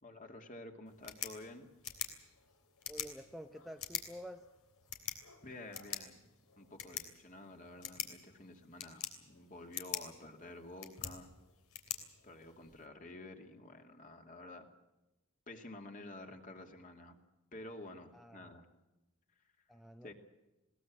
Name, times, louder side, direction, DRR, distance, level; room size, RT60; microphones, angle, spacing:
voice 1, 0.0-1.7 5.4-6.2 6.6-11.3 12.2-14.7 15.5-17.2 17.5-18.7 20.0-20.1, left 2 dB, 35° left, 4 dB, 2.5 m, -50 dB
pen click, 0.9-12.9, left 9 dB, 80° left, 3.2 m, -46 dB
voice 2, 2.9-4.5 18.1-18.5 19.7-20.1, equal, ahead, 6 dB, 0.7 m, -49 dB
21.0 x 19.0 x 7.5 m, 1.0 s
head